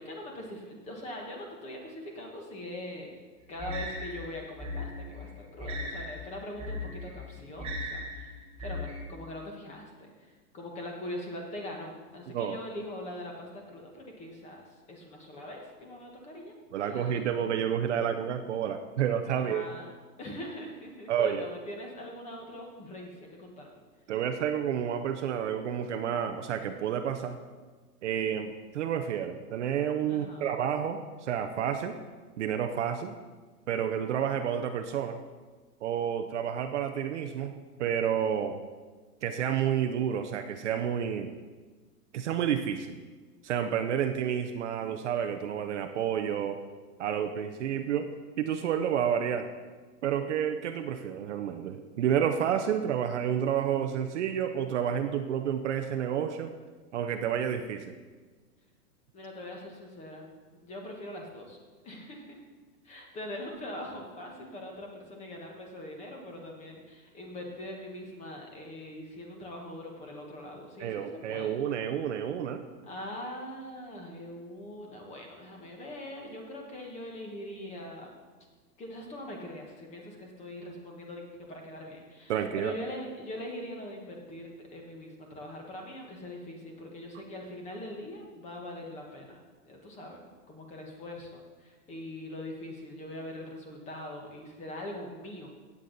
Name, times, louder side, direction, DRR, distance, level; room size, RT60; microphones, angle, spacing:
voice 1, 0.0-3.1 3.5-10.1 10.5-16.5 16.8-17.1 19.4-19.9 20.2-23.8 30.1-30.4 59.1-60.3 60.6-61.6 61.8-62.4 62.8-71.5 72.9-78.1 78.8-95.5, left 1 dB, 15° left, 1 dB, 1.3 m, -42 dB
sound 1, 3.6-9.0, left 2 dB, 15° right, 1.1 m, -38 dB
voice 2, 16.7-19.7 21.1-21.5 24.1-27.4 28.0-32.0 32.4-33.2 33.7-35.2 35.8-37.5 37.8-38.6 39.2-41.3 42.1-42.9 43.4-46.6 47.0-48.1 48.4-49.5 50.0-56.5 56.9-57.9 70.8-72.7 82.3-82.8, right 9 dB, 50° right, 7 dB, 0.7 m, -30 dB
16.0 x 8.3 x 4.0 m, 1.4 s
hypercardioid pair, 160°, 48 cm